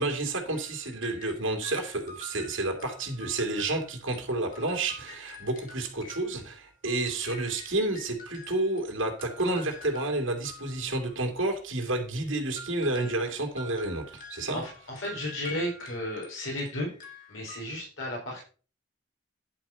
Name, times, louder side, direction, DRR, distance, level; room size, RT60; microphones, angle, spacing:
voice 1, 0.0-14.6, right 2 dB, 80° right, 2 dB, 2.6 m, -30 dB
sound 1, 0.5-4.2 4.5-8.9 9.2-11.5 12.5-17.6, left 2 dB, 40° left, 2.6 m, -48 dB
voice 2, 14.5-16.9 17.3-18.4, left 1 dB, 80° left, -3 dB, 3.9 m, -34 dB
10.5 x 4.9 x 5.7 m, 0.38 s
head